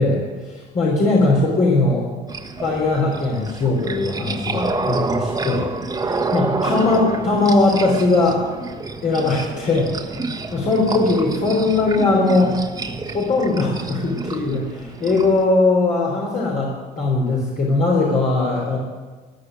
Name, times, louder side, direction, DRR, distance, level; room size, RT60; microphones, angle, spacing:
voice 1, 0.0-2.1 2.6-5.7 6.0-8.4 9.0-9.9 10.5-12.5 13.1-18.8, left 3 dB, 50° left, -3 dB, 3.8 m, -19 dB
sound 1, 2.3-15.5, right 3 dB, 20° right, 1.3 m, -28 dB
14.5 x 10.5 x 9.6 m, 1.4 s
cardioid pair, 110°, 17 cm